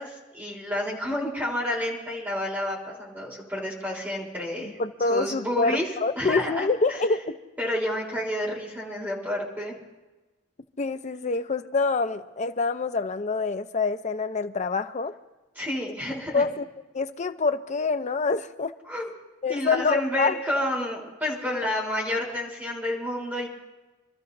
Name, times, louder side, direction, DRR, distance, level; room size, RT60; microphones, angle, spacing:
voice 1, 0.0-4.8 5.1-5.9 6.2-6.7 7.6-9.8 15.6-16.4 18.9-19.1 19.5-23.5, left 1 dB, 10° right, -3 dB, 3.6 m, -30 dB
voice 2, 4.6-7.4 10.8-15.1 16.3-16.7 16.9-18.7 19.4-20.6, left 4 dB, 40° left, 9 dB, 0.6 m, -26 dB
27.5 x 13.5 x 2.6 m, 1.2 s
head